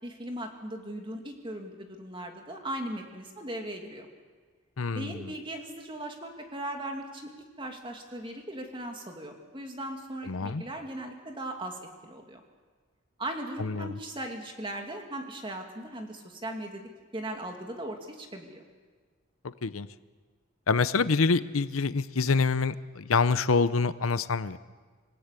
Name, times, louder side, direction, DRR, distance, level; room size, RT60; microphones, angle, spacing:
voice 1, 0.0-4.1 4.9-7.3 7.6-12.4 13.2-16.8 17.1-18.6, right 1 dB, 25° right, 3 dB, 2.5 m, -38 dB
voice 2, 4.8-5.2 10.3-10.6 13.6-13.9 19.6-19.9 20.7-24.6, left 4 dB, 90° left, 14 dB, 0.8 m, -26 dB
27.0 x 15.5 x 8.3 m, 1.5 s
head